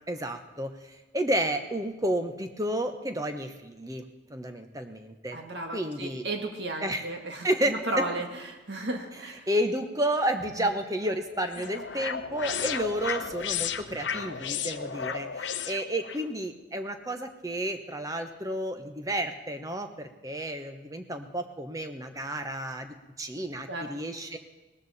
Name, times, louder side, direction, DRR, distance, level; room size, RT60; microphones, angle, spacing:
voice 1, 0.1-4.0 4.3-5.4 5.7-6.2 6.8-7.1 7.4-7.7 9.5-24.4, right 1 dB, 15° right, 7 dB, 1.0 m, -31 dB
voice 2, 5.3-9.5 23.7-23.9, right 2 dB, 60° right, 3 dB, 1.8 m, -34 dB
sound 1, 11.0-16.2, left 7 dB, 65° left, 0.7 m, -34 dB
19.0 x 13.5 x 4.2 m, 1.1 s
head